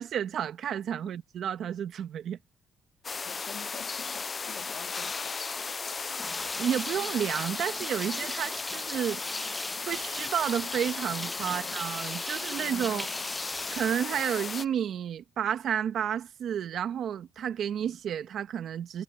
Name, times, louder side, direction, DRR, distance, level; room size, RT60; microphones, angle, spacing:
voice 1, 0.0-2.4 6.6-9.2 9.5-9.6 9.8-13.1 13.5-19.0, right 9 dB, 70° right, 1.4 m, -31 dB
sound 1, 3.0-14.7, left 4 dB, 35° left, 0.5 m, -36 dB
voice 2, 3.2-5.4 5.8-6.0 11.4-11.8 12.3-13.1, left 9 dB, 70° left, 2.3 m, -48 dB
sound 2, 5.9-14.7, left 1 dB, 5° left, 1.7 m, -39 dB
cardioid pair, 90°, 0 cm